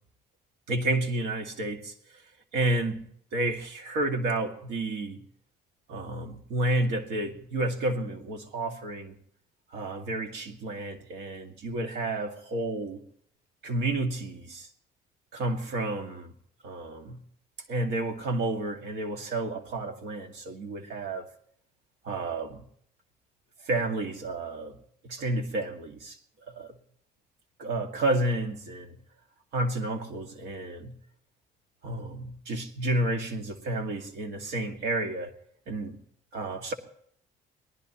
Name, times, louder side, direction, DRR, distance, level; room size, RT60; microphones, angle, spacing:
voice 1, 0.7-1.9 2.5-3.0 3.3-5.3 5.9-9.2 9.7-13.0 13.6-14.7 15.3-16.3 16.6-17.2 17.7-21.3 22.0-22.6 23.7-24.8 25.0-26.2 26.5-26.7 27.6-29.0 29.5-31.0 31.8-35.3 35.7-36.0 36.3-36.7, right 2 dB, 80° right, 2.1 m, -31 dB
25.0 x 18.0 x 3.0 m
cardioid pair, 110°, 17 cm